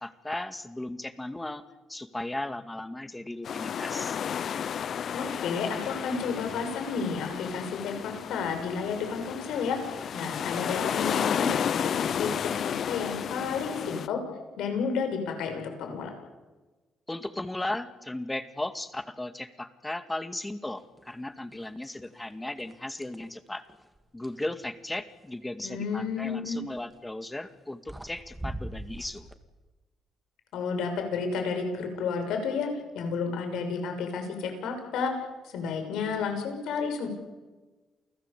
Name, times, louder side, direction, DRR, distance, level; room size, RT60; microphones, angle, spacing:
voice 1, 0.0-1.6 1.9-4.2 17.1-23.6 24.1-29.3, left 1 dB, 10° left, 10 dB, 2.2 m, -36 dB
sound 1, 3.4-14.1, left 8 dB, 60° left, 0.7 m, -32 dB
voice 2, 5.1-9.8 10.1-14.2 14.6-16.1 25.6-26.6 30.5-32.7 32.9-35.1 35.4-37.1, left 5 dB, 85° left, 6 dB, 6.5 m, -31 dB
sound 2, 21.0-21.2 21.5-22.2 22.6-24.4 26.6-26.9 27.6-27.7 27.9-29.4, right 1 dB, 10° right, 2.3 m, -42 dB
29.5 x 19.0 x 8.5 m, 1.2 s
cardioid pair, 90°, 0 cm